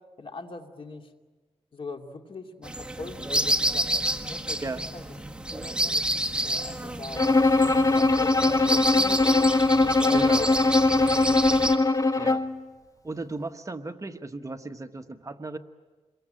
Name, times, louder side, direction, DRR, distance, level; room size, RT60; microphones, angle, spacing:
voice 1, 0.2-1.1 1.7-3.9 4.2-5.0 5.5-6.1 6.4-7.3 7.6-10.6 10.9-11.6, left 3 dB, 55° left, 4 dB, 2.6 m, -41 dB
sound 1, 2.6-11.8, right 1 dB, 10° right, 1.7 m, -29 dB
Bowed string instrument, 7.2-12.6, left 2 dB, 30° left, 1.1 m, -21 dB
voice 2, 10.1-10.5 12.2-12.4 13.0-15.6, right 2 dB, 30° right, 7 dB, 1.3 m, -35 dB
27.5 x 22.5 x 9.0 m, 1.3 s
wide cardioid pair, 85°, 11 cm